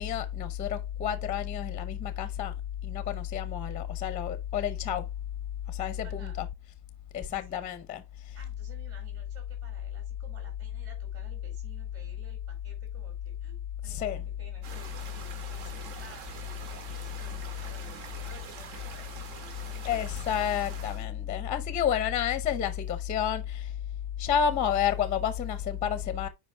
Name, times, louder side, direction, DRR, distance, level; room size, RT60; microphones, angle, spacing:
voice 1, 0.0-2.5 2.8-5.1 5.7-6.5 7.1-8.4 13.9-14.2 19.8-23.8 24.2-26.3, left 9 dB, 15° left, 0.7 m, -30 dB
voice 2, 6.0-6.5 7.5-7.8 8.4-20.1, right 3 dB, 35° right, 5.2 m, -55 dB
sound 1, 14.6-21.1, right 5 dB, 60° right, 2.0 m, -44 dB
7.9 x 5.1 x 3.4 m
cardioid pair, 155°, 44 cm